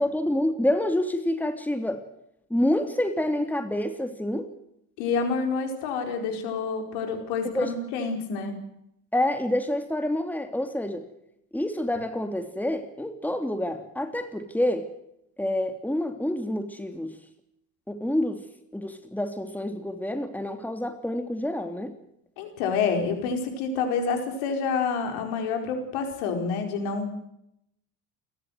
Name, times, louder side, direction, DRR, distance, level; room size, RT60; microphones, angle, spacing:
voice 1, 0.0-2.0 2.5-4.5 7.4-7.7 9.1-11.1 11.5-14.9 15.4-17.2 17.9-18.5 18.7-21.9, left 1 dB, 5° left, 6 dB, 3.1 m, -27 dB
voice 2, 5.0-8.6 22.4-27.2, left 5 dB, 80° left, 5 dB, 4.8 m, -28 dB
29.5 x 14.0 x 8.1 m, 0.78 s
hypercardioid pair, 60°, 45 cm